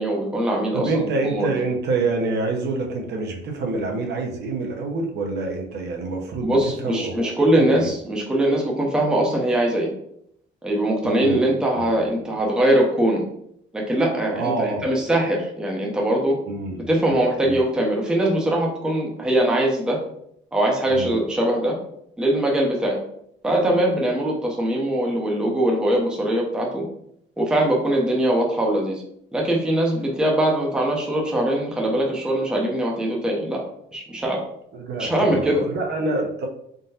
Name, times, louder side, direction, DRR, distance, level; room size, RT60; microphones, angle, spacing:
voice 1, 0.0-1.1 1.3-1.5 6.4-9.9 10.6-13.2 13.7-16.4 16.9-20.0 20.5-21.8 22.2-23.0 23.4-26.8 27.4-29.0 29.3-33.6 33.9-34.4 35.0-35.6, right 1 dB, 5° right, -2 dB, 0.6 m, -21 dB
voice 2, 0.7-7.3 7.6-7.9 11.0-11.4 11.7-12.0 14.3-15.0 16.5-17.0 17.4-17.6 20.9-21.1 34.7-36.5, right 3 dB, 55° right, 1 dB, 0.8 m, -27 dB
3.9 x 3.8 x 2.7 m, 0.73 s
cardioid pair, 165°, 20 cm